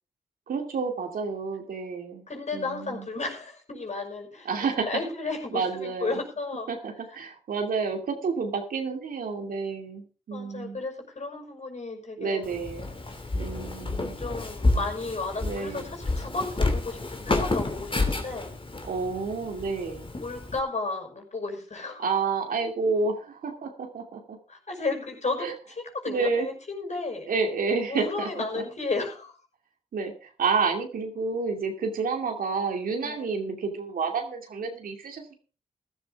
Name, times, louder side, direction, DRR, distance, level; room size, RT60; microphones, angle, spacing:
voice 1, 0.5-2.3 2.5-3.1 4.5-4.9 5.5-6.2 6.7-10.8 12.2-12.9 13.3-14.2 15.4-15.9 18.8-20.1 22.0-24.4 25.4-25.5 26.1-26.5 27.3-28.6 29.9-35.3, right 4 dB, 80° right, 3 dB, 2.6 m, -30 dB
voice 2, 2.3-6.7 10.3-12.5 13.1-13.2 14.0-18.5 20.2-22.1 24.5-25.5 25.8-27.3 27.9-29.3 33.0-33.3, left 3 dB, 55° left, 3 dB, 5.8 m, -33 dB
Walk footsteps, 12.4-20.6, left 2 dB, 35° left, 2.9 m, -30 dB
15.5 x 12.5 x 3.6 m, 0.36 s
cardioid pair, 45°, 15 cm